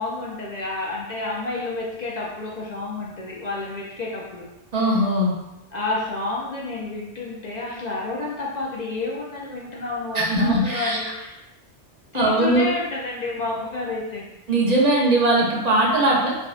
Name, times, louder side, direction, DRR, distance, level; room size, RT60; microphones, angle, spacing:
voice 1, 0.0-4.5 5.7-11.3 12.1-14.3, left 2 dB, 60° left, -4 dB, 0.4 m, -30 dB
voice 2, 4.7-5.3 10.1-11.1 12.1-12.7 14.5-16.4, right 1 dB, 45° right, -3 dB, 0.6 m, -20 dB
3.6 x 2.4 x 2.4 m, 0.94 s
omnidirectional pair, 1.2 m